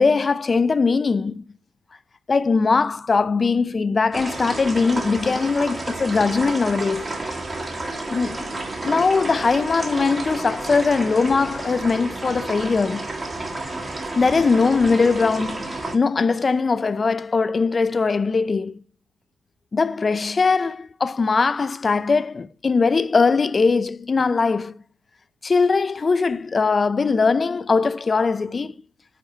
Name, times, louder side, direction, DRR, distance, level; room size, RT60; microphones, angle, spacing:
voice 1, 0.0-1.4 2.3-7.1 8.1-8.5 8.8-13.1 14.2-18.8 19.7-24.8 25.4-28.7, left 4 dB, 30° left, 0.5 m, -20 dB
sound 1, 4.1-16.0, right 2 dB, 20° right, 1.9 m, -31 dB
9.3 x 5.2 x 4.5 m
cardioid pair, 90°, 0 cm